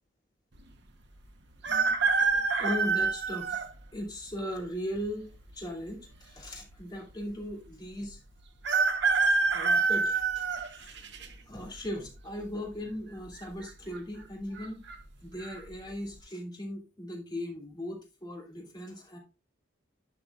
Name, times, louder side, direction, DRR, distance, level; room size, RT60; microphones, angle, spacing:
sound 1, 1.6-3.7 4.3-4.4 5.5-6.2 6.5-6.6 6.7-6.8 8.6-11.3 11.8-12.2 13.3-13.7 13.9-14.0 14.6-14.9 15.4-15.6, right 4 dB, 60° right, 0.9 m, -26 dB
voice 1, 1.7-2.0 2.3-3.6 3.9-8.2 9.3-10.4 10.7-14.8 15.2-19.2, equal, 20° left, -1 dB, 2.7 m, -38 dB
11.5 x 6.0 x 2.4 m, 0.29 s
head